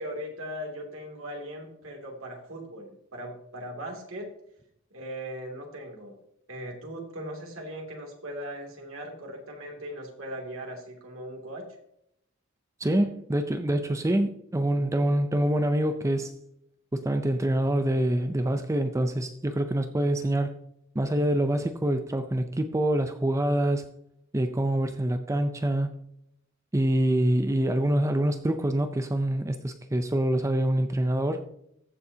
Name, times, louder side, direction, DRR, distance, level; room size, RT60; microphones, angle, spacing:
voice 1, 0.0-4.3 4.9-6.2 6.5-11.6, equal, 90° right, 0 dB, 2.6 m, -39 dB
voice 2, 12.8-16.3 16.9-20.5 21.0-23.9 24.3-25.9 26.7-31.5, right 1 dB, 15° right, 8 dB, 0.5 m, -25 dB
14.5 x 7.0 x 2.8 m, 0.74 s
head